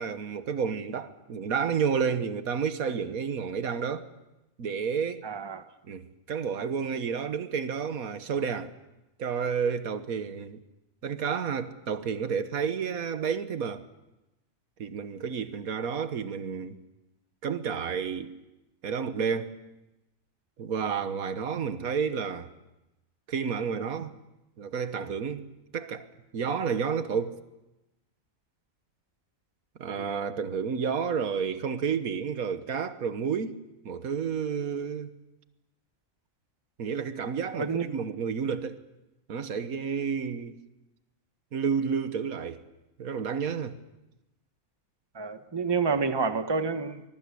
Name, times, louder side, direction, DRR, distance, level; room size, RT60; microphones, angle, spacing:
voice 1, 0.0-4.1 4.6-5.3 5.8-8.7 9.2-10.6 11.0-13.8 14.8-16.8 17.4-18.4 18.8-19.5 20.6-22.5 23.3-24.1 24.6-25.5 25.7-26.1 26.3-27.4 29.8-33.6 33.9-35.1 36.8-38.8 39.3-40.6 41.5-42.6 43.0-43.8, right 6 dB, 85° right, 1.7 m, -30 dB
voice 2, 5.2-5.6 30.0-30.1 37.5-37.9 45.1-47.1, right 4 dB, 20° right, 1.2 m, -29 dB
24.5 x 21.5 x 8.4 m
omnidirectional pair, 1.5 m